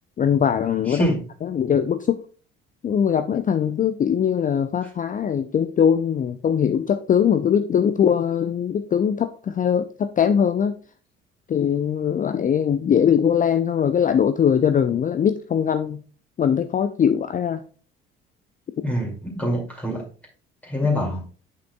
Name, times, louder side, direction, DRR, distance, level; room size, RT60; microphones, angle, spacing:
voice 1, 0.2-1.1 1.4-2.2 2.8-10.8 11.5-16.0 16.4-17.6, left 8 dB, 30° left, 9 dB, 0.5 m, -21 dB
voice 2, 0.9-1.2 18.8-20.0 20.6-21.2, equal, 5° left, -3 dB, 2.3 m, -25 dB
7.6 x 5.9 x 2.3 m, 0.40 s
figure-of-eight pair, 50°, 29 cm